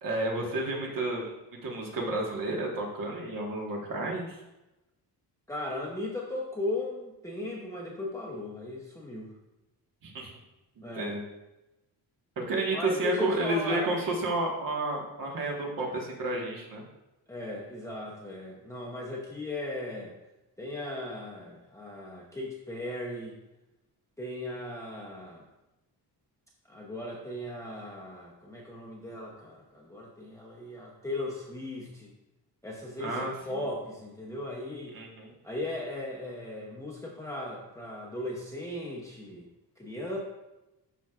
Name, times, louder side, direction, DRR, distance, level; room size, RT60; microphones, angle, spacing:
voice 1, 0.0-1.3 1.6-4.4 10.0-10.3 10.9-11.2 12.4-16.8 33.0-33.3 34.9-35.3, right 2 dB, 55° right, -1 dB, 1.6 m, -31 dB
voice 2, 5.5-9.3 10.8-11.2 12.7-13.9 17.3-20.1 20.6-23.3 24.2-25.4 26.7-32.1 32.6-35.0 35.4-39.5 39.8-40.2, left 1 dB, 10° left, -3 dB, 0.8 m, -37 dB
11.5 x 4.5 x 2.4 m, 1.0 s
wide cardioid pair, 155°, 39 cm